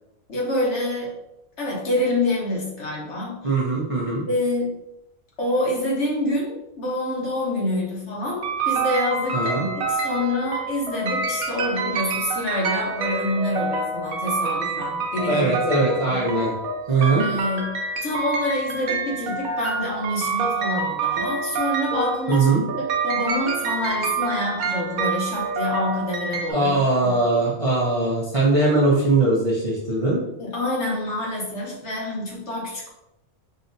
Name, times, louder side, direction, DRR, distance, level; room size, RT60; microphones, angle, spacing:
voice 1, 0.3-1.1 1.6-3.5 4.3-4.7 5.4-16.2 17.2-17.7 18.0-22.5 23.0-27.1 30.4-32.9, left 1 dB, 55° left, -3 dB, 1.3 m, -27 dB
voice 2, 3.4-4.2 9.3-9.6 15.3-16.5 16.9-17.3 22.3-22.6 26.5-30.2, right 2 dB, 30° right, -6 dB, 0.7 m, -20 dB
sound 1, 8.4-26.5, right 4 dB, 90° right, 1.2 m, -27 dB
5.4 x 2.7 x 2.6 m, 0.84 s
omnidirectional pair, 1.5 m